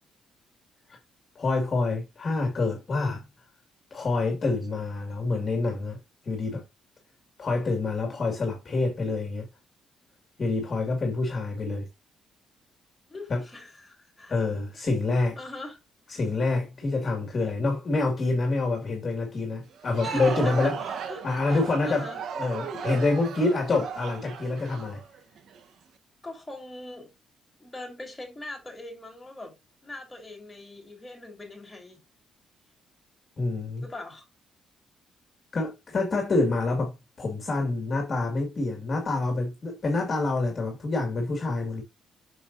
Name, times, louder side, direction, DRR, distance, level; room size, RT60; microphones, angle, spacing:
voice 1, 1.4-3.2 3.9-6.0 6.2-6.6 7.4-9.5 10.4-11.9 13.3-13.4 14.3-15.4 16.1-20.7 21.2-22.1 22.3-25.0 33.4-33.8 35.5-41.8, left 3 dB, 40° left, 2.1 m, -27 dB
voice 2, 13.1-14.3 15.4-15.8 16.1-16.2 20.0-22.2 26.2-27.1 27.6-29.6 29.8-32.0 33.8-34.3, left 2 dB, 15° left, 3.6 m, -41 dB
Crowd, 19.7-25.6, right 7 dB, 65° right, 1.0 m, -36 dB
6.9 x 6.3 x 2.6 m
cardioid pair, 90°, 0 cm